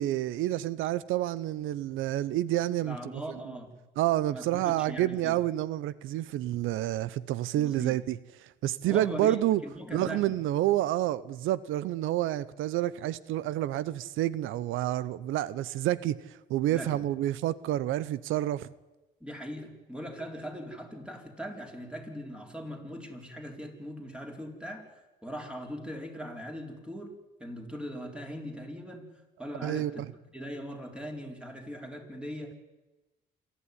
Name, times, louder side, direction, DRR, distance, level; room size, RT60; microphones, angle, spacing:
voice 1, 0.0-3.0 4.0-9.6 9.9-18.7 29.6-30.1, right 14 dB, 90° right, 0.6 m, -29 dB
voice 2, 2.8-3.7 4.3-5.4 7.6-8.0 8.8-10.2 16.7-17.0 19.2-24.9 25.2-27.1 27.4-29.1 29.4-30.0 30.3-32.5, equal, 5° right, 4.4 m, -40 dB
27.0 x 11.5 x 9.7 m
cardioid pair, 90°, 20 cm